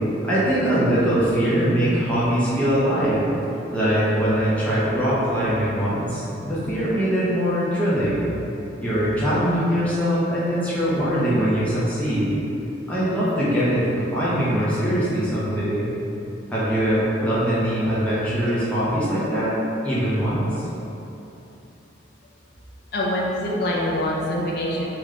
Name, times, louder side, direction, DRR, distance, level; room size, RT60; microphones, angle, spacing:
voice 1, 0.2-3.3 3.7-8.3 8.8-12.4 12.9-15.9 16.5-19.5 19.8-20.7, equal, 5° left, -10 dB, 0.8 m, -22 dB
voice 2, 22.9-24.8, left 1 dB, 55° left, -4 dB, 0.5 m, -24 dB
3.7 x 2.5 x 3.2 m, 3.0 s
head